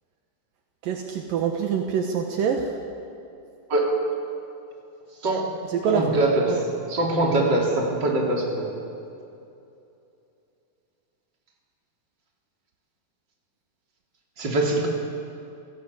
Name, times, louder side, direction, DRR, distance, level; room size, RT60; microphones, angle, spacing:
voice 1, 0.8-2.7 5.7-6.1 6.5-6.6, right 7 dB, 70° right, 3 dB, 2.9 m, -25 dB
voice 2, 3.7-4.1 5.2-5.6 5.8-8.7 14.4-14.9, right 2 dB, 30° right, -1 dB, 3.9 m, -23 dB
29.0 x 17.0 x 8.4 m, 2.7 s
omnidirectional pair, 4.3 m